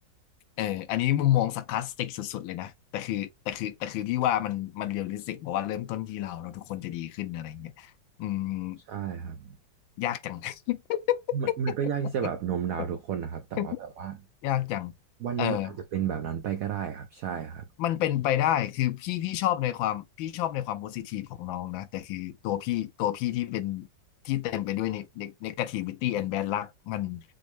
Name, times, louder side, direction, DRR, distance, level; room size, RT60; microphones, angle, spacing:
voice 1, 0.6-7.9 8.2-8.8 10.0-11.2 11.5-11.6 12.2-12.3 13.6-13.8 14.4-14.9 15.4-15.7 17.8-23.9 24.2-27.2, left 13 dB, 80° left, 1.4 m, -30 dB
voice 2, 8.9-9.6 11.3-14.2 15.2-17.7, right 8 dB, 85° right, 0.7 m, -32 dB
6.3 x 2.1 x 3.1 m
omnidirectional pair, 2.1 m